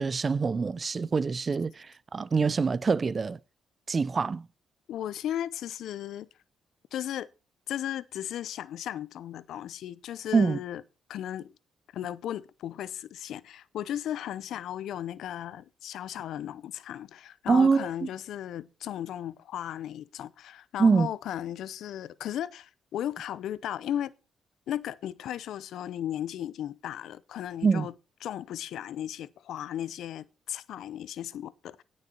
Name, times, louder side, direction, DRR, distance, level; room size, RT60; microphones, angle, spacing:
voice 1, 0.0-3.4 3.9-4.5 10.3-10.6 17.5-18.1 20.8-21.1 27.6-27.9, right 5 dB, 35° right, 0.5 m, -25 dB
voice 2, 4.9-6.3 6.9-7.3 7.7-10.8 11.1-11.5 11.9-24.1 24.7-27.9 28.2-31.8, left 11 dB, 75° left, 0.6 m, -36 dB
17.0 x 6.5 x 4.4 m
cardioid pair, 90°, 0 cm